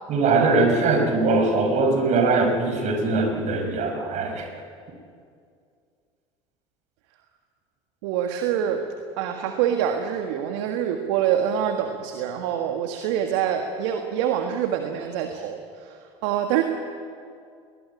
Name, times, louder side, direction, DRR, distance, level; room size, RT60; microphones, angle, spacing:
voice 1, 0.1-4.5, right 3 dB, 50° right, 5 dB, 5.8 m, -21 dB
voice 2, 8.0-8.9 9.2-16.6, right 9 dB, 70° right, 5 dB, 1.7 m, -25 dB
21.0 x 20.0 x 9.9 m, 2.3 s
hypercardioid pair, 70°, 15 cm